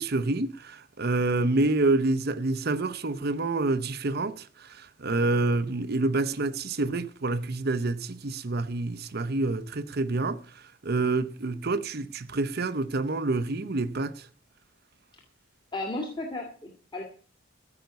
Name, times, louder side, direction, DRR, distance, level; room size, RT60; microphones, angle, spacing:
voice 1, 0.0-14.3, right 2 dB, 50° right, 0.8 m, -28 dB
voice 2, 15.7-17.0, left 2 dB, 20° left, 2.1 m, -34 dB
14.5 x 5.9 x 8.0 m
head